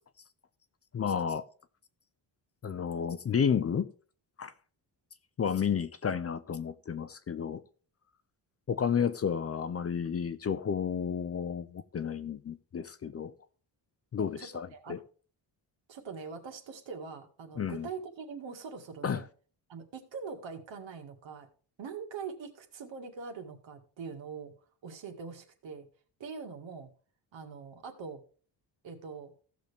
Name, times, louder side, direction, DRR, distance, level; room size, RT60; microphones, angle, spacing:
voice 1, 0.9-1.4 2.6-3.9 4.4-4.5 5.4-7.6 8.7-13.3 14.1-15.0 17.6-17.9 19.0-19.2, left 7 dB, 35° left, 0.5 m, -31 dB
voice 2, 14.2-15.0 15.9-19.3 19.7-21.5 21.8-24.5 24.8-25.9 26.2-26.9 27.3-28.2 28.8-29.3, right 5 dB, 75° right, 2.1 m, -43 dB
16.0 x 6.7 x 3.5 m
wide cardioid pair, 160°, 45 cm